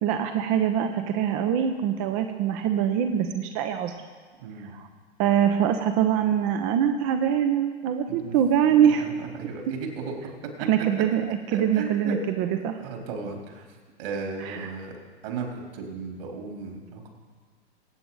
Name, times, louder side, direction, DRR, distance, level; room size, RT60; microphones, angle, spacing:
voice 1, 0.0-3.9 4.7-4.8 5.2-9.1 10.7-12.8 14.4-14.7, right 9 dB, 40° right, 7 dB, 1.0 m, -24 dB
voice 2, 8.6-10.2 10.6-10.7 11.5-12.2 12.8-13.6 14.0-14.9 15.2-17.1, right 4 dB, 55° right, 1 dB, 3.7 m, -35 dB
22.5 x 9.0 x 4.0 m, 1.5 s
figure-of-eight pair, 100°, 33 cm